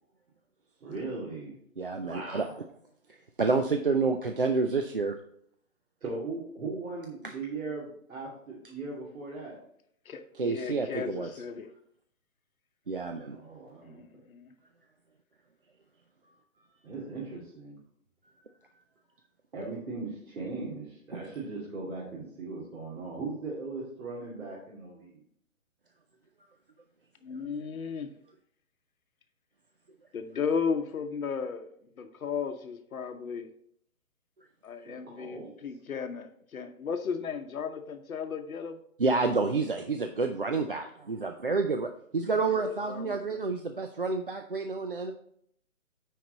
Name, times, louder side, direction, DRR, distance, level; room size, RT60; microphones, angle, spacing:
voice 1, 0.8-1.6 2.0-2.6 6.0-9.6 13.3-14.0 16.8-17.8 19.5-25.2 34.8-35.5, right 3 dB, 70° right, 2.7 m, -38 dB
voice 2, 1.8-2.5 3.4-5.1 10.4-11.3 12.9-13.4 21.1-21.2 39.0-45.1, right 4 dB, 45° right, 0.4 m, -29 dB
voice 3, 10.0-11.7 13.8-14.5 27.2-28.1 30.1-33.5 34.6-38.8 42.4-43.5, left 6 dB, 75° left, 0.9 m, -35 dB
9.0 x 4.7 x 3.9 m
hypercardioid pair, 170°, 42 cm